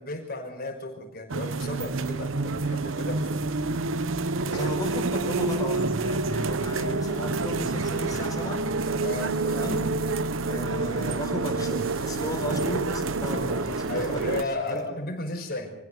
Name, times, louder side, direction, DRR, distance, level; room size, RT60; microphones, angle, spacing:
voice 1, 0.0-3.3 4.4-4.7 9.0-9.4 13.9-15.7, left 2 dB, 50° left, 3 dB, 6.0 m, -34 dB
sound 1, 1.3-14.4, right 3 dB, 85° right, 0.9 m, -28 dB
voice 2, 4.5-8.7 9.4-9.9 10.5-14.2 14.6-14.8, equal, 20° left, 4 dB, 4.5 m, -34 dB
sound 2, 7.7-14.9, right 9 dB, 50° right, 1.6 m, -48 dB
26.0 x 16.0 x 6.7 m, 0.86 s
head